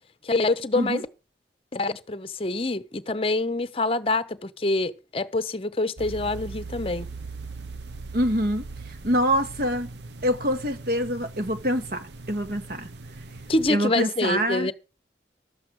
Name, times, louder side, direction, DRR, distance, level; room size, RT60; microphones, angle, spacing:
voice 1, 0.2-1.1 1.7-7.1 13.5-14.7, left 2 dB, 30° left, 0.8 m, -26 dB
sound 1, 6.0-13.7, right 3 dB, 75° right, 0.8 m, -40 dB
voice 2, 8.1-9.9 10.2-12.9 13.7-14.7, equal, 55° right, 1.5 m, -25 dB
12.0 x 7.6 x 6.3 m
head